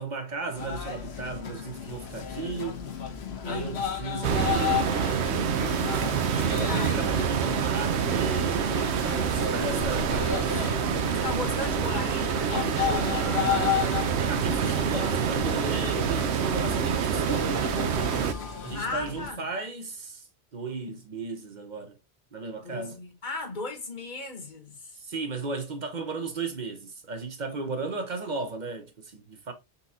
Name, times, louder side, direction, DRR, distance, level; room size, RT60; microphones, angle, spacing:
voice 1, 0.0-2.9 3.4-4.8 6.5-10.7 14.3-17.7 18.6-20.3 20.5-22.0 22.3-23.0 25.0-29.5, right 4 dB, 45° right, 0.9 m, -35 dB
sound 1, 0.6-19.3, left 8 dB, 70° left, 1.0 m, -34 dB
voice 2, 3.4-4.6 5.8-6.9 9.1-9.7 11.0-13.5 18.7-19.4 22.6-25.0, left 3 dB, 45° left, 1.2 m, -37 dB
sound 2, 4.2-18.3, right 7 dB, 80° right, 0.9 m, -27 dB
4.1 x 3.8 x 2.7 m
omnidirectional pair, 1.1 m